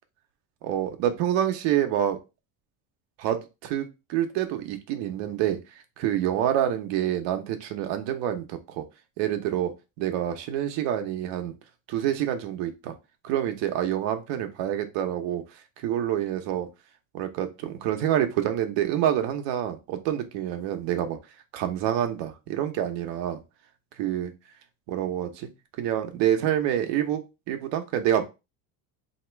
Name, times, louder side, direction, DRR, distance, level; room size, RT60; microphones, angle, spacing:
voice 1, 0.6-2.2 3.2-5.6 6.0-8.8 9.2-11.5 11.9-12.9 13.2-15.4 15.8-16.7 17.1-21.2 21.5-23.4 24.0-24.3 24.9-25.5 25.8-28.2, right 11 dB, 70° right, 6 dB, 0.9 m, -27 dB
3.0 x 2.9 x 4.4 m, 0.27 s
cardioid pair, 135°, 44 cm